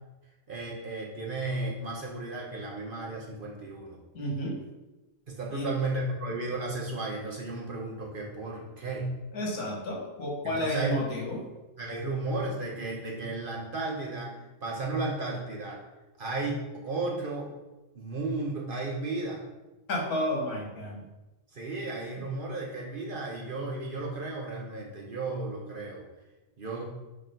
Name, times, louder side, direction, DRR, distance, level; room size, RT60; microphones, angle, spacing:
voice 1, 0.5-4.0 5.3-9.1 10.4-10.9 11.8-14.3 14.6-15.8 16.2-17.5 17.9-19.4 21.5-26.0 26.6-26.9, right 2 dB, 45° right, -2 dB, 0.9 m, -34 dB
voice 2, 4.1-4.6 5.5-5.7 9.3-11.4 19.9-21.0 22.2-22.3, equal, 80° left, -1 dB, 1.8 m, -31 dB
5.9 x 3.3 x 5.1 m, 1.1 s
omnidirectional pair, 1.5 m